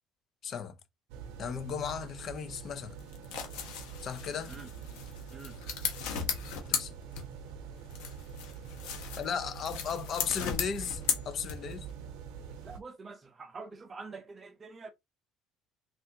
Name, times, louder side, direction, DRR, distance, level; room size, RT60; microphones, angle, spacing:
voice 1, 0.4-0.8 1.4-3.0 4.0-4.6 6.7-6.9 9.2-11.9, left 7 dB, 45° left, 0.5 m, -36 dB
sound 1, 1.1-12.8, right 7 dB, 85° right, 0.7 m, -45 dB
sound 2, 3.0-7.6 7.9-11.9, left 7 dB, 85° left, 0.8 m, -37 dB
voice 2, 5.3-5.6 12.6-14.9, right 4 dB, 25° right, 0.6 m, -46 dB
3.3 x 2.5 x 2.7 m
cardioid pair, 125°, 0 cm